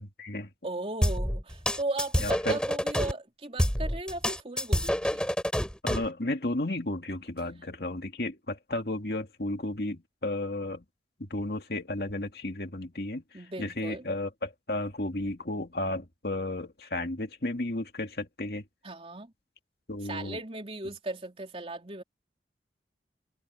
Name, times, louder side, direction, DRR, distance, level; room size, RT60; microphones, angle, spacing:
voice 1, 0.0-0.5 2.2-2.6 5.8-10.8 11.2-13.2 13.6-18.6 19.9-20.4, left 2 dB, 60° left, 2.3 m, -33 dB
voice 2, 0.6-5.3 13.3-14.1 18.8-19.3 20.0-22.0, right 2 dB, 35° right, 3.6 m, -37 dB
sound 1, 1.0-3.1 3.6-6.1, equal, 5° left, 3.7 m, -27 dB
head